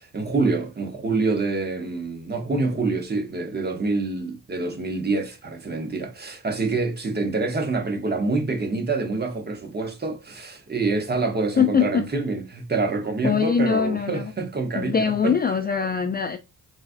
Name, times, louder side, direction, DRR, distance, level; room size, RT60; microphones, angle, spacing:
voice 1, 0.0-15.4, right 3 dB, 25° right, 0.9 m, -26 dB
voice 2, 11.6-12.0 13.2-14.3 14.7-16.4, left 6 dB, 25° left, 0.4 m, -22 dB
4.0 x 2.3 x 2.4 m
cardioid pair, 75°, 37 cm